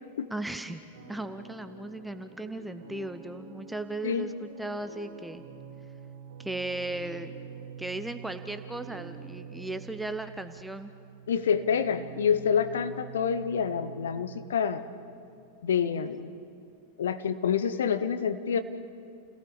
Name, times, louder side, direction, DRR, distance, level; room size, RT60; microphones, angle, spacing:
voice 1, 0.3-0.8 1.1-5.4 6.4-7.3 7.8-10.9, right 2 dB, 5° right, 9 dB, 0.9 m, -36 dB
sound 1, 0.9-10.0, right 3 dB, 60° right, 3.6 m, -49 dB
sound 2, 5.4-15.2, right 9 dB, 30° right, 3.6 m, -46 dB
voice 2, 11.3-14.8 15.6-16.3 17.0-18.6, left 7 dB, 65° left, 11 dB, 1.1 m, -27 dB
29.5 x 17.5 x 7.0 m, 2.5 s
figure-of-eight pair, 90°, 0 cm